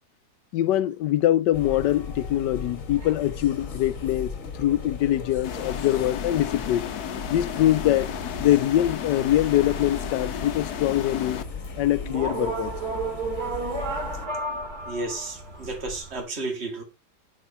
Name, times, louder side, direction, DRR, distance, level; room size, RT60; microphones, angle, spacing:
voice 1, 0.5-4.3 4.6-6.9 7.3-8.1 8.4-11.4 11.8-12.7, left 13 dB, 90° left, 1.3 m, -23 dB
sound 1, 1.5-14.3, left 5 dB, 50° left, 1.8 m, -37 dB
sound 2, 5.4-11.4, left 8 dB, 70° left, 1.4 m, -34 dB
sound 3, 7.2-16.2, right 2 dB, 65° right, 3.4 m, -35 dB
voice 2, 14.9-16.8, right 3 dB, 40° right, 2.4 m, -32 dB
10.0 x 5.3 x 5.6 m
omnidirectional pair, 1.8 m